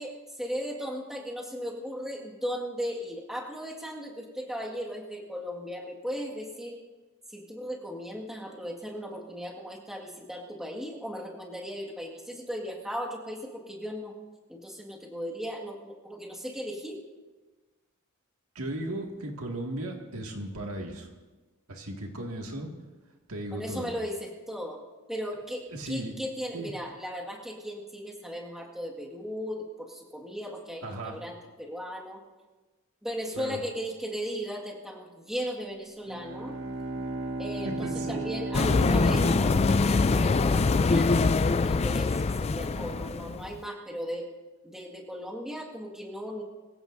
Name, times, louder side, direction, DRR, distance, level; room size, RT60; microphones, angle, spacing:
voice 1, 0.0-6.8 7.3-14.1 14.5-17.0 23.5-24.8 25.1-32.2 33.0-36.6 37.4-42.1 42.4-44.3 44.6-46.4, equal, ahead, -3 dB, 1.8 m, -37 dB
voice 2, 18.6-21.1 21.7-22.7 23.3-23.9 25.7-26.1 26.5-26.7 30.8-31.2 33.3-33.6 37.7-38.2 38.8-39.0, right 1 dB, 85° right, 1 dB, 2.0 m, -36 dB
Bowed string instrument, 36.0-40.6, right 2 dB, 55° right, 1.8 m, -35 dB
sound 1, 38.5-43.5, left 3 dB, 30° left, 0.4 m, -24 dB
24.0 x 15.5 x 2.6 m, 1.2 s
head